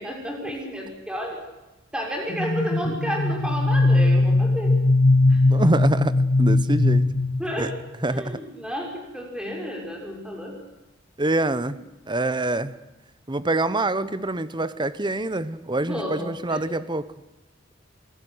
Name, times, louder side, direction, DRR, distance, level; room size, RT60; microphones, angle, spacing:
voice 1, 0.0-1.4 1.9-4.8 5.3-5.7 7.4-7.7 8.0-10.6 11.7-11.8 15.8-16.6, equal, 5° right, 0 dB, 6.4 m, -31 dB
sound 1, 2.3-7.9, left 2 dB, 55° left, 1.4 m, -20 dB
voice 2, 5.5-7.0 7.6-7.7 8.0-8.4 11.2-11.8 12.1-12.8 13.3-17.1, right 2 dB, 25° right, 15 dB, 1.1 m, -25 dB
27.0 x 18.5 x 8.1 m, 1.0 s
head